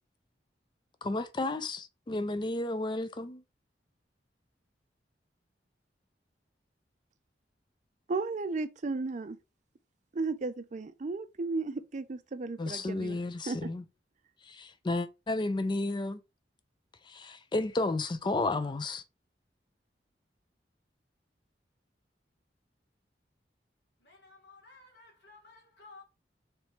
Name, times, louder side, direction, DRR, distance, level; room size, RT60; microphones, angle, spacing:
voice 1, 1.0-3.4 12.6-13.8 14.5-16.2 17.1-19.0, left 2 dB, 25° left, 0.4 m, -32 dB
voice 2, 8.1-9.4 10.1-13.2 13.5-13.7, right 3 dB, 45° right, 0.4 m, -34 dB
voice 3, 24.0-26.0, left 3 dB, 70° left, 1.8 m, -55 dB
3.3 x 3.1 x 4.3 m
head